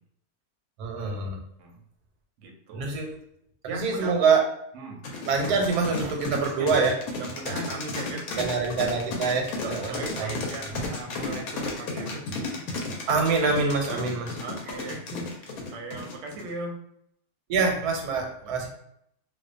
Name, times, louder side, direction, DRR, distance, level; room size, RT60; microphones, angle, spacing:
voice 1, 0.8-1.4 2.7-3.1 3.6-4.4 5.3-7.0 8.4-10.4 13.1-14.4 17.5-18.7, right 4 dB, 90° right, 2 dB, 1.1 m, -25 dB
voice 2, 2.4-2.9 3.7-4.2 4.7-5.0 6.6-6.7 7.1-8.5 9.6-13.0 14.4-16.8 18.4-18.7, right 2 dB, 70° right, 2 dB, 0.8 m, -38 dB
sound 1, 5.0-16.5, left 3 dB, 75° left, 1.0 m, -33 dB
2.6 x 2.1 x 2.4 m, 0.73 s
omnidirectional pair, 1.6 m